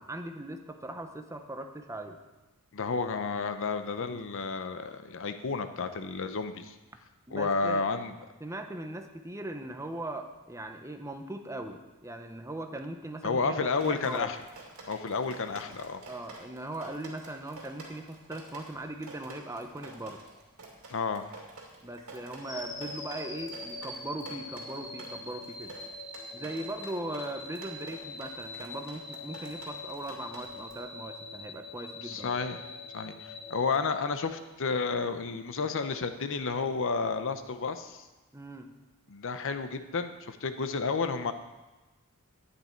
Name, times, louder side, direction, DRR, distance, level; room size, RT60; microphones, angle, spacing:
voice 1, 0.0-2.2 4.0-4.2 7.3-7.9 8.4-14.3 16.1-20.2 21.8-25.7 26.3-32.4 38.3-38.7, right 1 dB, 15° right, 6 dB, 0.8 m, -39 dB
voice 2, 2.7-6.7 7.3-8.1 13.2-14.4 14.9-16.0 20.9-21.3 32.0-32.6 32.9-38.0 39.1-41.3, left 4 dB, 65° left, 9 dB, 0.7 m, -31 dB
Drip, 13.8-30.8, right 2 dB, 70° right, 2.5 m, -49 dB
sound 1, 22.4-34.5, left 3 dB, 20° left, 1.6 m, -43 dB
11.5 x 9.8 x 4.5 m, 1.1 s
head